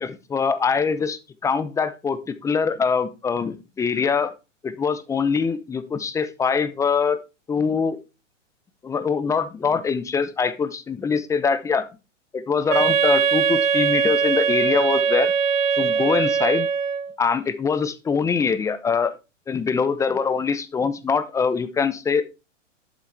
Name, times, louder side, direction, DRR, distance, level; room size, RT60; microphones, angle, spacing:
voice 1, 0.0-4.3 4.6-7.2 7.5-8.0 8.8-11.9 12.3-15.3 15.8-16.7 17.2-19.1 19.5-22.2, left 5 dB, 10° left, 13 dB, 0.6 m, -23 dB
Wind instrument woodwind instrument, 12.7-17.1, right 6 dB, 90° right, 0.8 m, -21 dB
11.5 x 7.0 x 3.3 m, 0.28 s
hypercardioid pair, 125°, 38 cm